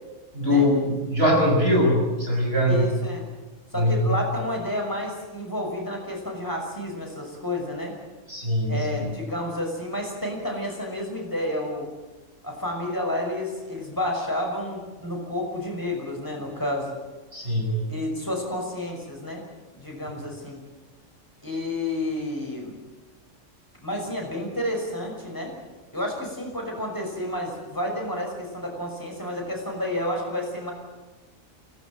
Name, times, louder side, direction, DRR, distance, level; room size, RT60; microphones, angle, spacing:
voice 1, 0.3-2.8 3.8-4.0 8.3-8.7 17.3-17.8, left 1 dB, 50° right, 0 dB, 6.8 m, -21 dB
voice 2, 2.7-3.2 3.7-7.9 8.7-11.9 12.4-17.0 17.9-19.4 19.7-20.6 21.4-22.8 23.8-25.5 25.9-30.7, left 1 dB, 15° left, 0 dB, 6.1 m, -30 dB
24.0 x 18.0 x 9.0 m, 1.2 s
omnidirectional pair, 1.3 m